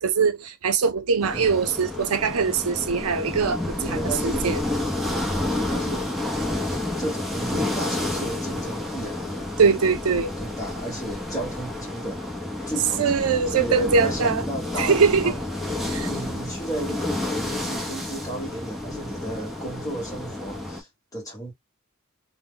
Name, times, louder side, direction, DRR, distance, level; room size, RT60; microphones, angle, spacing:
voice 1, 0.0-4.6 9.6-10.3 13.0-14.4 14.8-15.3 15.8-16.1, right 5 dB, 85° right, 0.5 m, -22 dB
sound 1, 1.2-20.8, left 1 dB, ahead, 0.7 m, -30 dB
voice 2, 3.8-4.6 5.5-6.1 6.6-9.8 10.4-12.3 12.7-21.5, right 1 dB, 15° left, 1.1 m, -34 dB
2.1 x 2.1 x 3.6 m
head